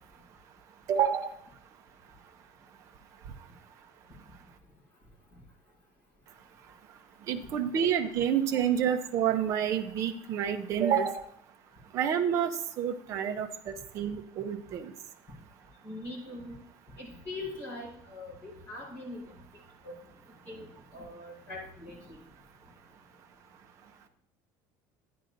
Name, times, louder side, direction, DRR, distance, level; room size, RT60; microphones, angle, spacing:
voice 1, 0.9-1.3 7.3-11.2 11.9-14.9, right 8 dB, 35° right, 6 dB, 0.7 m, -28 dB
voice 2, 15.8-16.6 17.0-19.2 19.8-20.0 20.5-22.2, left 2 dB, 20° left, -5 dB, 4.1 m, -42 dB
10.0 x 10.0 x 2.6 m, 0.65 s
cardioid pair, 180°, 9 cm